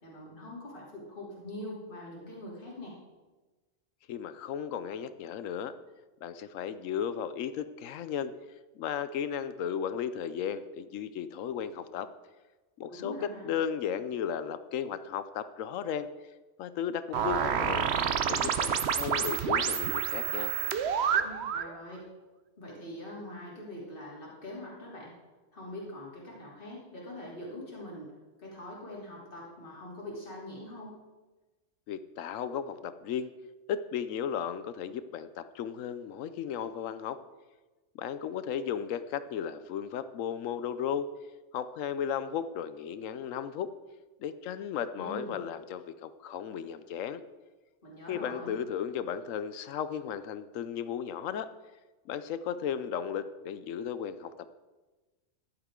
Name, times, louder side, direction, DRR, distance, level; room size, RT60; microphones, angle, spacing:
voice 1, 0.0-3.0 12.9-13.5 21.2-22.1 22.6-25.2 25.5-31.0 45.0-45.4 47.8-48.5, left 1 dB, 40° left, -4 dB, 3.1 m, -43 dB
voice 2, 4.1-5.7 6.2-8.3 8.8-12.1 12.8-16.1 16.6-17.9 18.2-20.5 31.9-33.3 33.7-37.2 37.9-41.1 41.5-43.7 44.2-47.2 48.1-51.5 52.1-54.3, left 8 dB, 90° left, 13 dB, 1.0 m, -35 dB
sound 1, 17.1-21.7, right 7 dB, 60° right, 0.9 m, -29 dB
14.5 x 11.5 x 3.7 m, 1.2 s
omnidirectional pair, 1.3 m